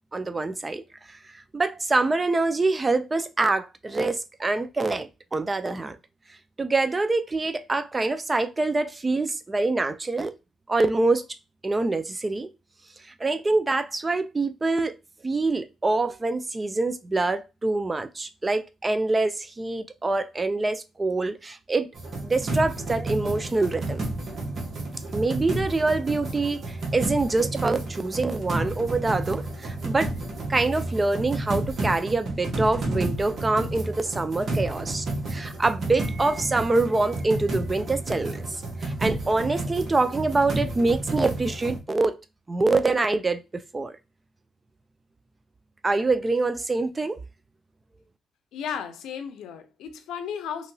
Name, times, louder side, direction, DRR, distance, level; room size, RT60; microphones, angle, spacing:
voice 1, 0.1-0.8 1.1-1.2 1.5-6.0 6.6-10.3 10.7-11.3 11.6-12.5 13.2-14.9 15.2-21.9 22.2-24.0 25.1-30.1 30.5-42.2 42.5-44.0 45.8-47.2, right 3 dB, 25° right, 0.4 m, -25 dB
sound 1, 21.9-41.8, right 2 dB, 50° right, 1.1 m, -31 dB
voice 2, 48.5-50.7, left 7 dB, 85° left, 0.5 m, -34 dB
2.9 x 2.7 x 2.6 m
cardioid pair, 90°, 0 cm